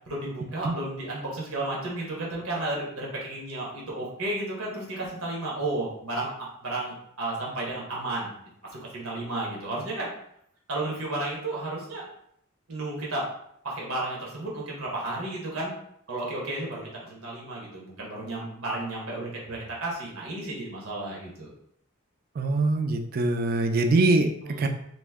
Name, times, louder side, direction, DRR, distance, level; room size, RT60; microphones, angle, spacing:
voice 1, 0.1-6.3 6.6-8.3 8.7-10.1 10.7-12.0 12.7-13.3 13.6-15.7 16.1-21.5 24.4-24.7, right 2 dB, 85° right, -3 dB, 1.2 m, -33 dB
voice 2, 22.4-24.3 24.6-24.7, right 2 dB, 45° right, 5 dB, 0.4 m, -23 dB
3.1 x 2.6 x 3.5 m, 0.72 s
head